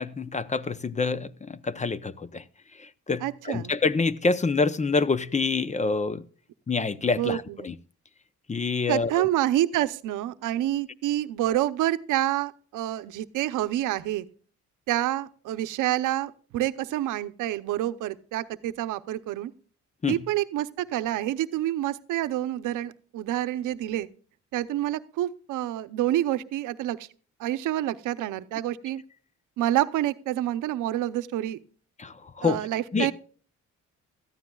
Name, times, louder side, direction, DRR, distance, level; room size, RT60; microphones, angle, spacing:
voice 1, 0.0-2.4 2.8-6.2 6.7-7.8 8.5-9.3 20.0-20.2 32.0-32.6 32.9-33.1, left 4 dB, 25° left, 0.7 m, -27 dB
voice 2, 3.2-3.7 7.2-7.4 8.9-14.2 14.9-19.5 20.1-24.1 24.5-27.1 27.4-29.0 29.6-31.6 32.4-33.1, right 13 dB, 85° right, 0.8 m, -28 dB
17.0 x 13.5 x 2.3 m
cardioid pair, 90°, 30 cm